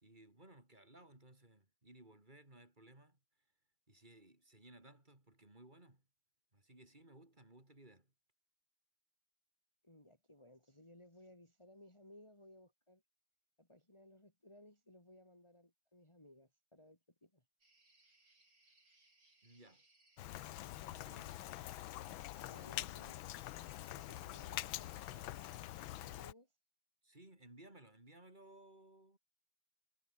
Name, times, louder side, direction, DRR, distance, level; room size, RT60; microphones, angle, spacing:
voice 1, 0.0-3.2 3.9-6.0 6.5-8.1 19.4-19.8 20.8-21.4 27.0-29.2, right 1 dB, 20° right, 4.7 m, -60 dB
voice 2, 9.8-13.0 13.6-17.4 22.5-23.2 23.9-25.6 25.9-26.5, left 1 dB, 15° left, 3.9 m, -61 dB
sound 1, 17.6-26.2, right 2 dB, 55° right, 7.3 m, -71 dB
Rain, 20.2-26.3, left 15 dB, 80° left, 1.5 m, -45 dB
omnidirectional pair, 2.2 m